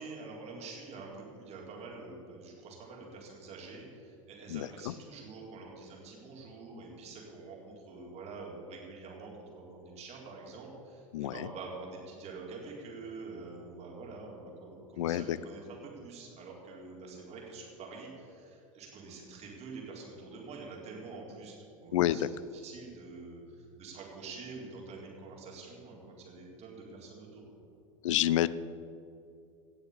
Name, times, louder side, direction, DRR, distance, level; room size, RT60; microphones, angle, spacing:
voice 1, 0.0-22.3 22.6-27.4, right 3 dB, 40° right, -2 dB, 4.0 m, -46 dB
voice 2, 4.5-4.9 11.1-11.5 15.0-15.4 21.9-22.3 28.0-28.5, left 13 dB, 70° left, 18 dB, 0.6 m, -28 dB
17.5 x 7.1 x 7.2 m, 2.6 s
hypercardioid pair, 90°, 17 cm